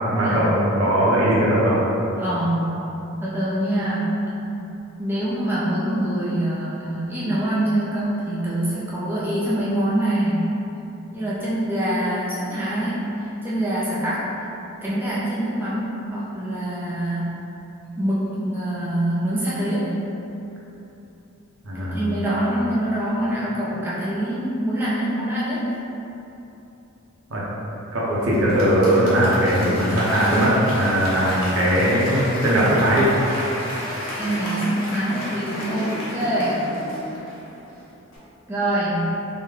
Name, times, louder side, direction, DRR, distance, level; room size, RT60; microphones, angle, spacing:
voice 1, 0.0-1.8 21.6-22.1 27.3-27.4 27.9-33.1, equal, 70° right, -6 dB, 0.7 m, -19 dB
voice 2, 2.2-2.7 3.2-4.2 5.0-10.4 11.1-14.3 14.8-17.4 18.0-19.9 21.7-25.6 34.2-36.7 38.5-39.1, right 1 dB, 10° right, -9 dB, 0.4 m, -25 dB
Applause / Crowd, 28.3-37.7 38.1-38.2, equal, 75° left, 1.0 m, -32 dB
3.2 x 2.1 x 3.6 m, 3.0 s
head